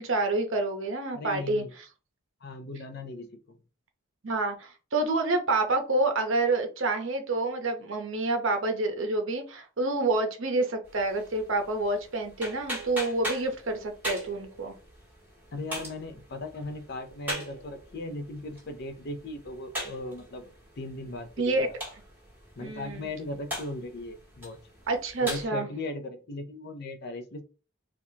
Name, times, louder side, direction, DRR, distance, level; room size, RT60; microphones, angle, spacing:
voice 1, 0.0-1.6 4.2-14.8 21.4-21.7 22.6-23.1 24.9-25.7, right 2 dB, 60° right, 0.7 m, -28 dB
voice 2, 1.1-1.7 2.4-3.6 15.5-21.8 22.6-24.6 25.2-27.4, left 2 dB, 45° left, 0.5 m, -38 dB
sound 1, 10.9-25.4, equal, 10° right, 1.5 m, -41 dB
4.3 x 2.4 x 2.7 m
head